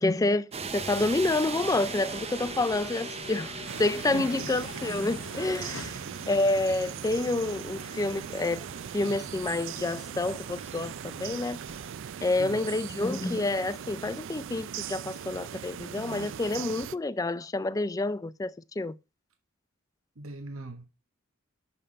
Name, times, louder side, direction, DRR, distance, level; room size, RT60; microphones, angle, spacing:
voice 1, 0.0-5.9 6.3-8.6 8.9-11.6 12.2-18.9, left 2 dB, 15° left, 0.3 m, -28 dB
sound 1, 0.5-11.9, right 4 dB, 30° right, 0.7 m, -41 dB
sound 2, 1.4-8.5, left 5 dB, 80° left, 0.7 m, -47 dB
sound 3, 3.7-17.0, right 8 dB, 65° right, 0.4 m, -40 dB
voice 2, 4.1-4.5 5.8-6.0 12.4-12.7 20.2-20.9, right 2 dB, 85° right, 1.1 m, -40 dB
6.7 x 5.6 x 5.4 m
head